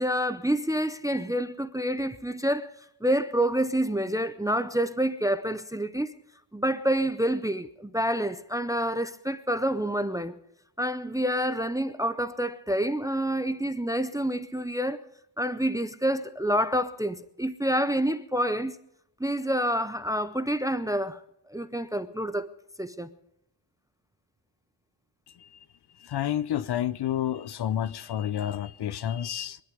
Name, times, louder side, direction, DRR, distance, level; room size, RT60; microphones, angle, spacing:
voice 1, 0.0-2.7 3.0-6.1 6.5-10.4 10.8-15.0 15.4-18.8 19.2-21.2 21.5-22.5 22.8-23.1, equal, 5° right, 0.5 m, -28 dB
voice 2, 26.0-29.6, left 11 dB, 50° left, 0.6 m, -30 dB
24.0 x 11.5 x 5.1 m
wide cardioid pair, 175°, 49 cm